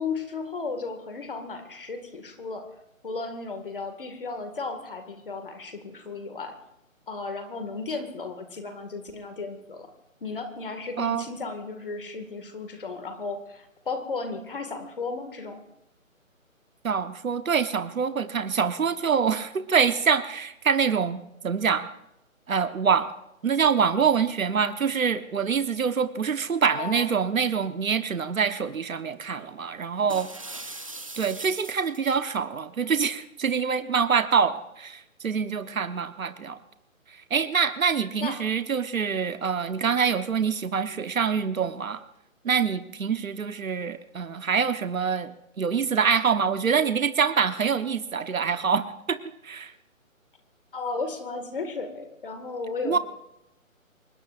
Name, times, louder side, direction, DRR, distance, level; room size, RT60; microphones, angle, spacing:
voice 1, 0.0-2.7 3.0-6.5 7.1-9.9 10.2-15.6 26.7-27.1 38.2-38.4 50.7-53.0, left 4 dB, 40° left, 6 dB, 2.1 m, -34 dB
voice 2, 16.8-21.9 22.5-23.1 23.4-30.3 31.2-36.6 37.3-42.0 42.4-45.3 45.6-49.2 49.4-49.7 52.8-53.0, right 6 dB, 75° right, 10 dB, 1.3 m, -25 dB
sound 1, 30.1-32.2, right 2 dB, 25° right, 0.8 m, -40 dB
24.0 x 20.5 x 2.6 m, 0.85 s
hypercardioid pair, 170°, 41 cm